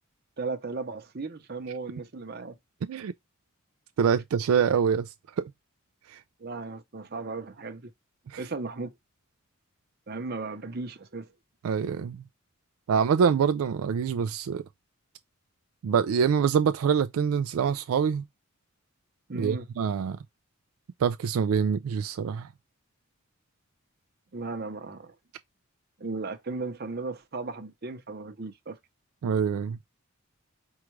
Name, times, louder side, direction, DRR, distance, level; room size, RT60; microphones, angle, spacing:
voice 1, 0.4-2.6 6.4-7.9 8.4-8.9 10.1-11.3 19.3-19.6 24.3-25.1 26.0-28.8, right 3 dB, 45° right, 0.8 m, -36 dB
voice 2, 4.0-5.5 6.1-6.2 8.3-8.4 11.6-12.2 12.9-14.6 15.8-18.3 19.3-20.2 21.0-22.5 29.2-29.8, right 7 dB, 80° right, 0.3 m, -25 dB
4.6 x 2.4 x 3.1 m
head